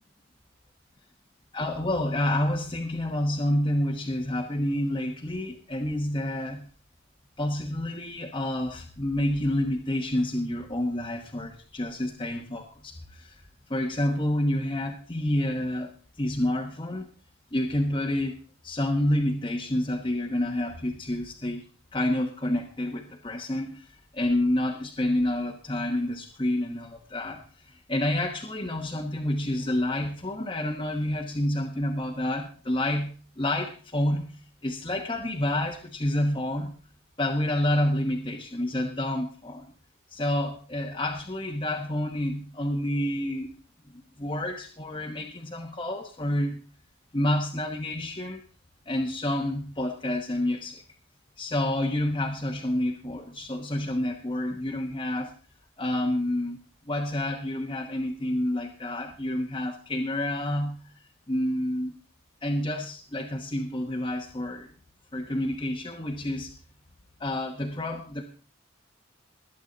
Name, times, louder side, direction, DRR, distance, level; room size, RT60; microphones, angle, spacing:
voice 1, 1.5-6.7 7.4-13.4 13.7-17.1 17.5-21.6 21.9-34.2 34.6-36.7 37.2-39.7 40.1-43.5 43.9-46.6 47.1-48.4 48.9-50.8 51.4-55.3 55.8-56.6 56.9-60.9 61.3-61.9 62.4-64.7 65.1-66.5 67.2-68.2, left 1 dB, 25° left, 0 dB, 1.1 m, -29 dB
20.5 x 8.3 x 4.0 m, 0.38 s
head